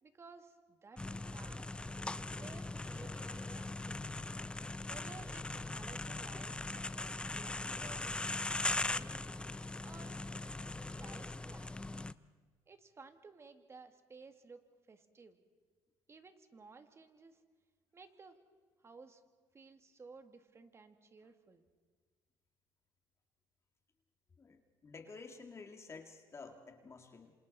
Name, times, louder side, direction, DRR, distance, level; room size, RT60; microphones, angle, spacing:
voice 1, 0.0-1.6 2.4-4.1 4.9-6.8 7.3-8.3 8.6-9.3 9.8-10.3 10.9-11.7 12.7-14.6 14.9-15.4 16.1-17.4 17.9-18.4 18.8-19.2 19.5-21.6, right 4 dB, 30° right, 7 dB, 2.0 m, -56 dB
sound 1, 1.0-12.1, left 2 dB, 10° left, 0.6 m, -40 dB
voice 2, 24.4-27.3, left 4 dB, 35° left, 4 dB, 2.1 m, -51 dB
27.5 x 27.5 x 4.2 m, 1.5 s
cardioid pair, 85°, 8 cm